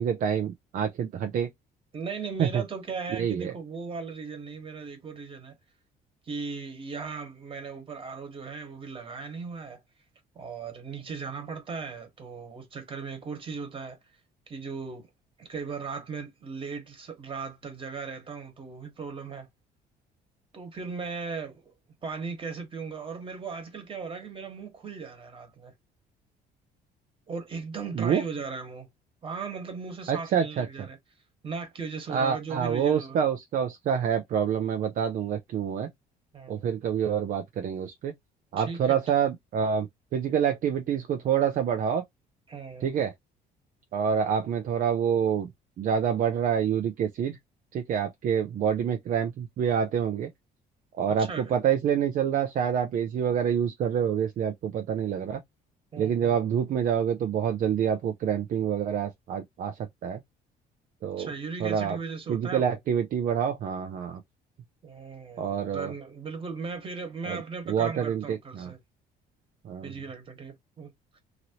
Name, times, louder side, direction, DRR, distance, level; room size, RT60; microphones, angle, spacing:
voice 1, 0.0-1.5 2.4-2.6 3.1-3.5 27.9-28.2 30.1-30.7 32.1-35.9 36.5-38.1 38.5-39.9 40.1-42.0 42.8-43.1 43.9-45.5 45.8-47.4 47.7-50.3 51.0-55.4 56.0-60.2 61.0-61.3 61.6-62.0 62.3-64.2 65.4-65.9 67.3-67.4 67.7-68.7 69.6-69.9, right 8 dB, 50° right, 0.5 m, -27 dB
voice 2, 1.9-5.5 6.3-9.8 10.3-14.0 14.5-15.1 15.4-19.5 20.5-21.7 22.0-25.7 27.3-28.9 29.2-31.0 31.4-33.2 36.3-36.7 38.6-39.0 42.5-42.9 51.2-51.5 55.9-56.4 61.2-62.8 64.8-68.8 69.8-71.2, right 5 dB, 30° right, 1.4 m, -37 dB
3.0 x 2.6 x 2.9 m
cardioid pair, 110°, 17 cm